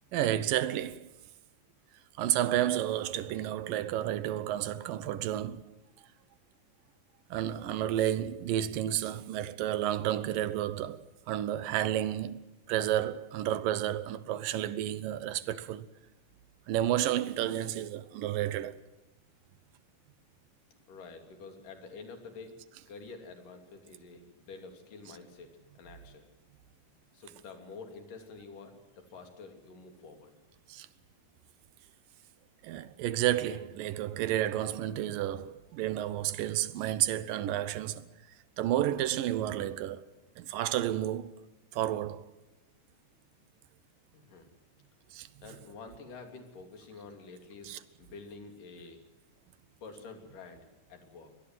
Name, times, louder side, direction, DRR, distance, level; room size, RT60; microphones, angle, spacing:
voice 1, 0.1-1.1 2.2-5.6 7.3-12.4 12.7-15.9 16.7-18.8 30.7-30.9 32.6-38.1 38.6-40.1 40.4-41.3 41.7-42.3 45.1-45.3 47.7-47.8, right 12 dB, 85° right, 2.7 m, -31 dB
voice 2, 20.7-26.3 27.1-30.3 44.1-44.5 45.4-49.0 49.8-51.3, left 4 dB, 75° left, 4.5 m, -48 dB
24.0 x 19.5 x 7.6 m
omnidirectional pair, 3.8 m